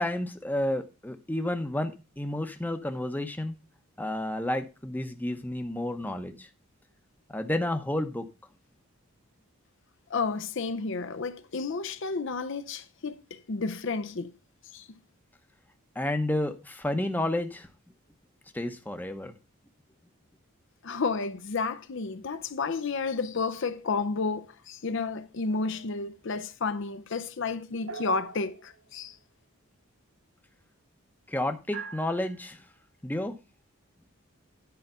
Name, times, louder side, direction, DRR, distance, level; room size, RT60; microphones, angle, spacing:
voice 1, 0.0-3.6 4.0-6.5 7.3-8.3 16.0-17.7 18.5-19.3 31.3-32.6 33.0-33.4, left 1 dB, 10° left, 0.8 m, -31 dB
voice 2, 10.1-14.3 14.7-14.8 20.8-29.1, left 4 dB, 55° left, 0.6 m, -31 dB
sound 1, 25.5-26.1 27.9-29.2 31.7-32.6, right 5 dB, 70° right, 3.2 m, -44 dB
10.5 x 4.9 x 5.4 m
head